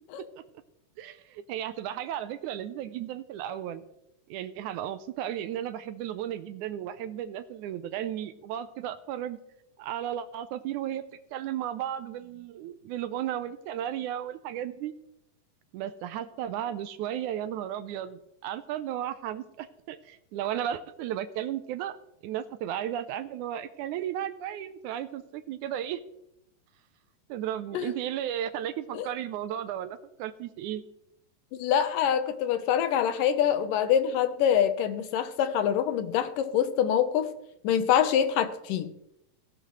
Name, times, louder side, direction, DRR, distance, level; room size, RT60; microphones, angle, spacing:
voice 1, 1.0-3.8 4.3-9.4 9.8-11.0 11.3-15.0 15.7-22.0 22.2-26.0 27.3-30.8, right 11 dB, 80° right, 11 dB, 1.8 m, -34 dB
voice 2, 31.6-37.3 37.6-38.9, left 9 dB, 75° left, 10 dB, 2.5 m, -25 dB
16.5 x 16.0 x 3.2 m, 0.81 s
omnidirectional pair, 4.1 m